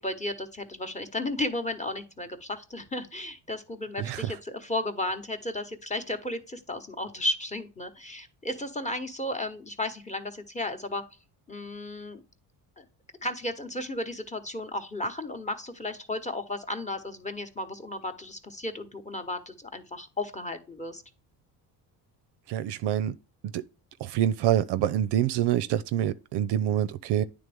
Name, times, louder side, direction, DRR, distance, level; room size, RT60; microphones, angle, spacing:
voice 1, 0.0-11.0 11.5-12.2 12.8-12.9 13.2-21.0, left 1 dB, 15° left, 1.0 m, -34 dB
voice 2, 4.0-4.4 22.5-23.2 23.4-23.6 24.0-27.2, right 11 dB, 60° right, 0.5 m, -26 dB
9.3 x 3.5 x 3.5 m
supercardioid pair, 85°, 47 cm